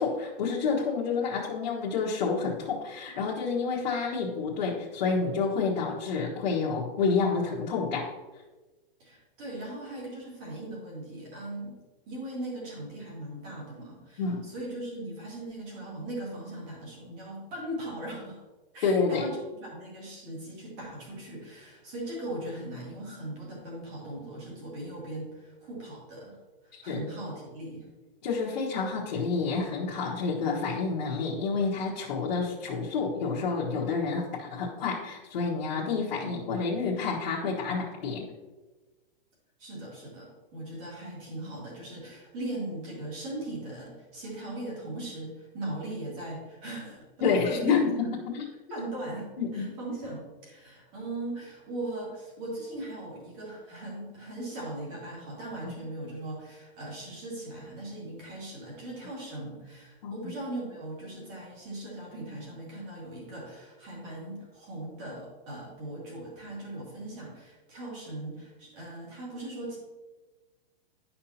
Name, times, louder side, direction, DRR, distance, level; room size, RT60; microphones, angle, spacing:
voice 1, 0.0-8.1 14.2-14.5 18.8-19.3 26.7-27.0 28.2-38.3 47.2-47.9 48.3-48.4 49.4-49.7 60.0-60.3, left 5 dB, 50° left, -5 dB, 1.3 m, -29 dB
voice 2, 9.0-11.8 12.1-18.4 18.7-26.4 26.6-27.9 39.6-47.1 47.4-48.1 48.7-69.8, right 1 dB, 25° right, -3 dB, 2.0 m, -39 dB
10.5 x 5.6 x 2.8 m, 1.2 s
hypercardioid pair, 180°, 30 cm